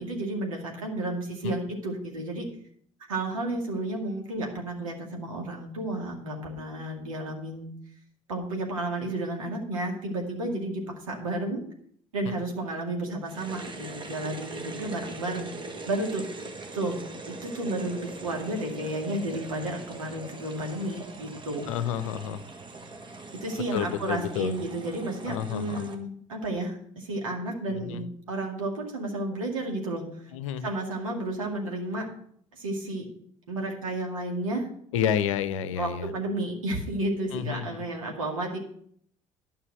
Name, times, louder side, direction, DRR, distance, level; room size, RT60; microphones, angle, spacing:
voice 1, 0.0-2.5 3.1-7.7 8.3-11.6 12.1-15.5 15.9-16.2 16.7-17.0 17.3-21.7 23.4-30.0 30.6-32.1 32.6-33.1 33.5-34.7 35.8-38.6, right 1 dB, 75° right, 1 dB, 2.2 m, -32 dB
sound 1, 13.3-25.9, right 3 dB, 25° right, 1.5 m, -42 dB
voice 2, 21.7-22.4 23.7-24.6 25.3-25.9 27.7-28.1 30.3-30.7 34.9-36.1 37.3-37.7, left 9 dB, 65° left, 14 dB, 0.7 m, -30 dB
12.5 x 5.7 x 6.4 m, 0.64 s
figure-of-eight pair, 55°, 17 cm